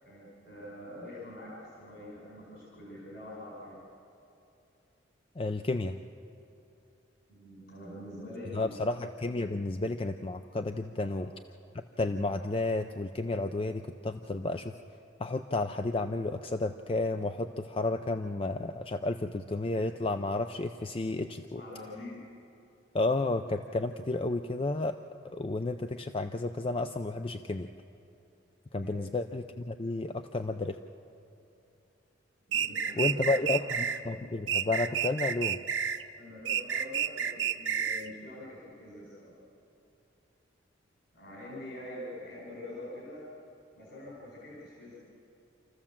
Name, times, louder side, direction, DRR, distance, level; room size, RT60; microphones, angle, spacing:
voice 1, 0.0-3.8 7.3-8.8 11.0-11.1 21.6-22.2 28.8-29.0 32.5-33.6 36.2-39.3 41.1-43.2 43.8-45.0, left 1 dB, 60° left, -5 dB, 5.2 m, -45 dB
voice 2, 5.4-6.0 8.5-11.3 12.0-14.7 15.2-21.6 22.9-25.0 25.3-27.7 28.7-30.8 33.0-35.6, left 2 dB, 30° left, 8 dB, 0.5 m, -32 dB
sound 1, 32.5-34.0 34.5-36.0 36.5-38.1, right 8 dB, 75° right, 0.7 m, -30 dB
27.5 x 14.5 x 7.3 m, 2.7 s
head